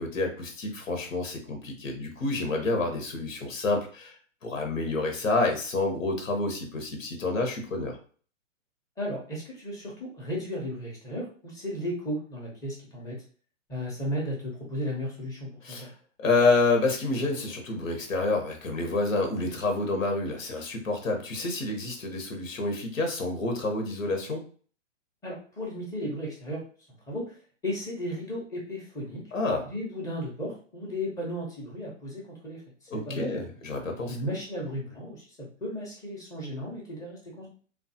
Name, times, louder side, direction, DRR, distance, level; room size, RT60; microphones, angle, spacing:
voice 1, 0.0-4.1 4.4-8.0 15.6-15.9 16.2-24.4 29.3-29.6 32.9-34.2, left 3 dB, 90° left, 3 dB, 1.1 m, -28 dB
voice 2, 9.0-13.2 13.7-15.9 25.2-26.6 27.1-27.3 27.6-29.2 29.6-32.6 32.9-33.4 34.1-37.5, equal, 10° left, -3 dB, 0.6 m, -35 dB
3.2 x 2.3 x 2.7 m, 0.43 s
hypercardioid pair, 140°, 38 cm